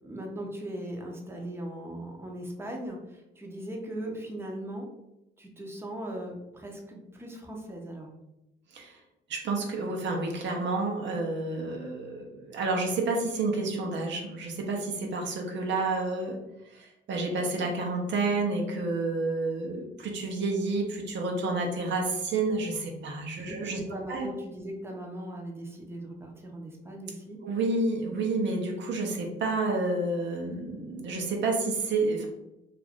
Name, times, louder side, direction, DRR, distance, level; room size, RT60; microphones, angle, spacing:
voice 1, 0.0-4.9 5.4-8.1 23.4-27.4, right 1 dB, 10° right, 0 dB, 0.7 m, -39 dB
voice 2, 9.3-16.4 16.7-24.3 27.4-32.3, right 3 dB, 65° right, 1 dB, 0.7 m, -30 dB
2.5 x 2.4 x 3.4 m, 0.90 s
cardioid pair, 90°, 20 cm